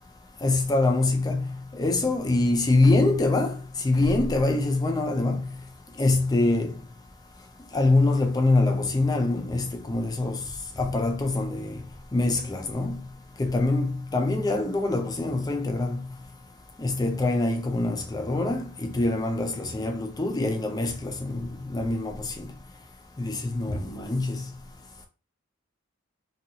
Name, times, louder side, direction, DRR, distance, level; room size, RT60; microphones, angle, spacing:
voice 1, 0.4-3.6 3.8-5.5 6.0-6.7 7.7-10.4 10.8-11.8 12.1-13.0 13.4-16.1 16.8-22.5 23.2-24.4, left 2 dB, 20° left, 0.4 m, -24 dB
2.7 x 2.4 x 2.7 m
head